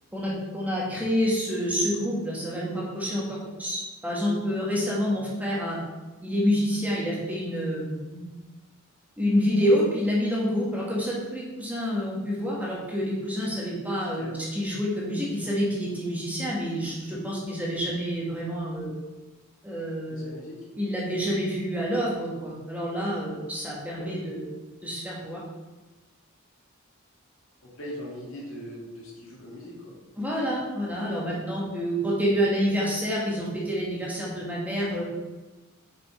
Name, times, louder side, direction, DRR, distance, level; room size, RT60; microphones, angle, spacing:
voice 1, 0.1-5.8 6.2-8.2 9.2-18.9 19.6-20.3 20.7-24.4 24.8-25.4 30.2-35.0, equal, 5° right, -5 dB, 1.4 m, -28 dB
voice 2, 20.1-20.6 24.0-24.1 27.8-29.9, equal, 60° left, -3 dB, 2.0 m, -40 dB
6.1 x 6.0 x 4.3 m, 1.2 s
head